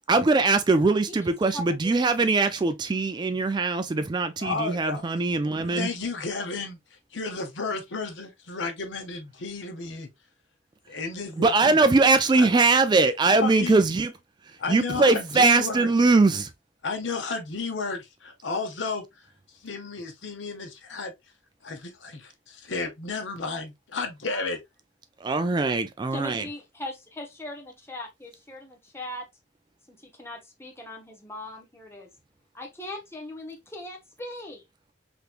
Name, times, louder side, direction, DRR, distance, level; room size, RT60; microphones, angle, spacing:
voice 1, 0.1-5.9 11.4-14.1 14.5-16.5 25.2-26.5, right 3 dB, 25° right, 0.3 m, -21 dB
voice 2, 1.1-1.9 24.3-24.5 26.1-29.3 29.9-32.1 32.5-34.6, left 1 dB, 15° left, 0.9 m, -39 dB
voice 3, 4.4-5.0 5.7-6.8 7.1-10.1 10.9-11.8 12.4-12.5 13.4-13.8 14.6-15.9 16.8-19.0 19.6-21.1 21.6-24.6, left 4 dB, 85° left, 0.9 m, -32 dB
3.4 x 3.0 x 2.4 m
head